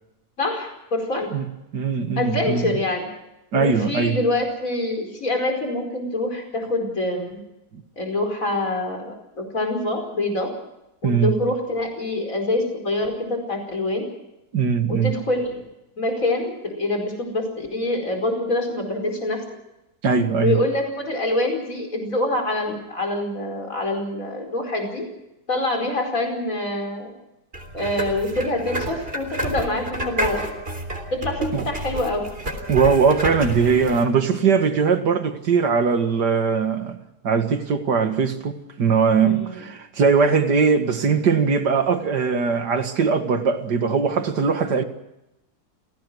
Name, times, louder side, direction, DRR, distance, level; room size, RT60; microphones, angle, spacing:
voice 1, 0.4-1.3 2.2-3.1 3.5-7.4 8.0-10.5 11.0-14.1 14.9-15.6 16.0-19.4 20.4-25.1 25.5-27.1 27.7-30.4 31.1-32.2 39.2-39.6, left 2 dB, 50° left, 5.3 m, -25 dB
voice 2, 1.7-2.7 3.5-4.2 11.0-11.3 14.5-15.2 20.0-20.6 31.5-31.7 32.7-37.0 37.2-44.8, right 5 dB, 85° right, 2.4 m, -20 dB
sound 1, 27.5-34.0, right 1 dB, 35° right, 3.8 m, -30 dB
29.0 x 17.5 x 6.3 m
omnidirectional pair, 1.7 m